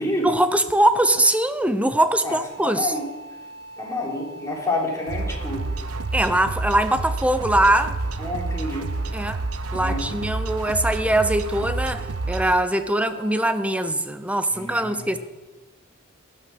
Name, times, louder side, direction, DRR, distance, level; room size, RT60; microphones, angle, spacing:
voice 1, 0.2-2.9 6.1-8.0 9.1-9.4 9.7-15.2, right 1 dB, 5° right, 11 dB, 0.8 m, -22 dB
sound 1, 2.4-13.9, right 2 dB, 25° right, 6.5 m, -42 dB
voice 2, 2.6-3.1 3.8-5.7 8.2-8.9 9.8-10.0 14.5-15.1, left 1 dB, 15° left, -2 dB, 3.7 m, -28 dB
sound 2, 5.1-12.6, right 3 dB, 75° right, 0.9 m, -29 dB
16.5 x 11.0 x 6.3 m, 1.2 s
head